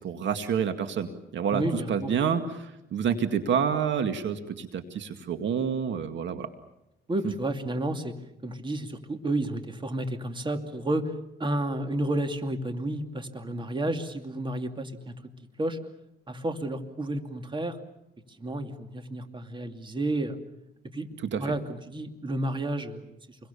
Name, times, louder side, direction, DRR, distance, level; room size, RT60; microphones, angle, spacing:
voice 1, 0.0-1.6 1.9-6.5 21.3-21.4, right 7 dB, 70° right, 8 dB, 2.1 m, -28 dB
voice 2, 1.5-2.1 7.1-8.1 8.4-11.1 11.4-15.1 15.6-15.8 16.3-17.8 18.4-20.4 20.9-21.1 21.4-23.1, right 1 dB, 25° right, 6 dB, 2.6 m, -31 dB
28.0 x 22.5 x 7.0 m, 0.84 s
cardioid pair, 90°, 20 cm